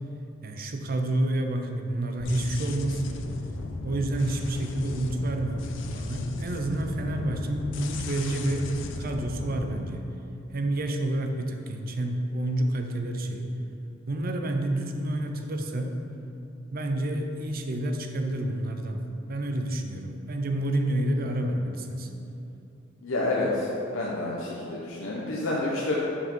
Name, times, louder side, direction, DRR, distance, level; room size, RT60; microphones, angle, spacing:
voice 1, 0.4-3.0 3.8-8.7 9.0-10.1 10.5-13.5 14.1-16.0 16.7-19.0 19.3-22.1, right 1 dB, 50° right, 4 dB, 0.6 m, -29 dB
sound 1, 2.2-9.8, left 2 dB, 65° left, 0.5 m, -36 dB
voice 2, 23.0-23.7 23.9-26.0, left 2 dB, 80° left, -5 dB, 0.8 m, -28 dB
5.7 x 4.8 x 5.6 m, 2.9 s
head